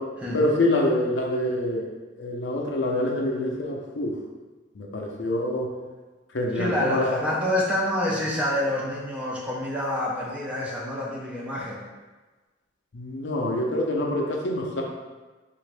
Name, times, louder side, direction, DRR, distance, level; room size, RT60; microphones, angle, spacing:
voice 1, 0.3-1.9 2.2-4.1 4.8-5.7 6.3-7.2 12.9-14.8, left 1 dB, 60° left, 0 dB, 0.5 m, -26 dB
voice 2, 6.5-11.8, left 1 dB, 5° right, -5 dB, 0.5 m, -27 dB
3.6 x 2.5 x 3.2 m, 1.3 s
head